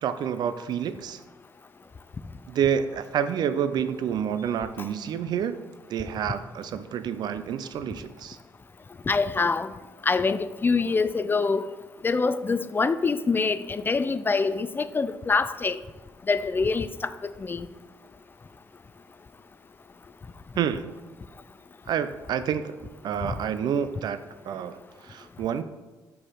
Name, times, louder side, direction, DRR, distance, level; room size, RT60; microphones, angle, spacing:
voice 1, 0.0-1.2 2.5-5.6 5.9-8.4 20.6-20.9 21.9-22.8 23.0-24.2 24.5-25.6, right 8 dB, 70° right, 12 dB, 0.4 m, -28 dB
voice 2, 9.1-9.7 10.0-11.7 12.0-15.8 16.3-17.7 23.2-23.3, left 4 dB, 30° left, 14 dB, 0.4 m, -25 dB
5.0 x 4.6 x 5.6 m, 1.2 s
cardioid pair, 80°, 8 cm